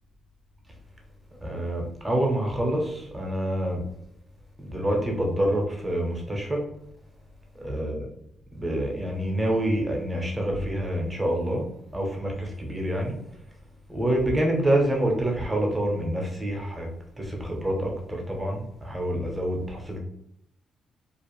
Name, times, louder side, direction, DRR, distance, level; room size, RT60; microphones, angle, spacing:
voice 1, 1.4-3.8 4.6-6.6 7.6-8.1 8.5-13.4 13.9-16.9 17.2-20.0, right 1 dB, 10° right, 0 dB, 0.7 m, -27 dB
2.4 x 2.1 x 3.0 m, 0.75 s
cardioid pair, 90°, 0 cm